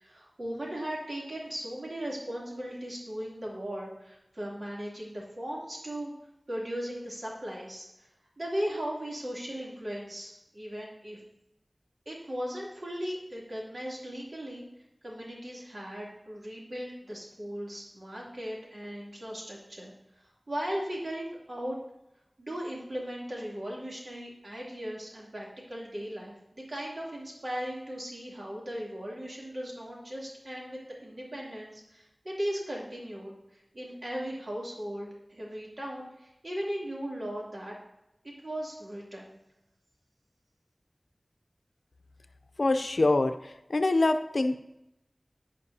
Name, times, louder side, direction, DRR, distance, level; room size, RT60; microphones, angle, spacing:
voice 1, 0.0-6.1 6.5-8.1 8.4-11.2 12.0-14.7 15.0-21.8 22.4-37.7 38.2-39.3, equal, 65° right, -4 dB, 2.9 m, -37 dB
voice 2, 42.6-44.6, left 2 dB, 85° left, 9 dB, 0.6 m, -25 dB
15.0 x 5.2 x 2.8 m, 0.88 s
wide cardioid pair, 50°, 0 cm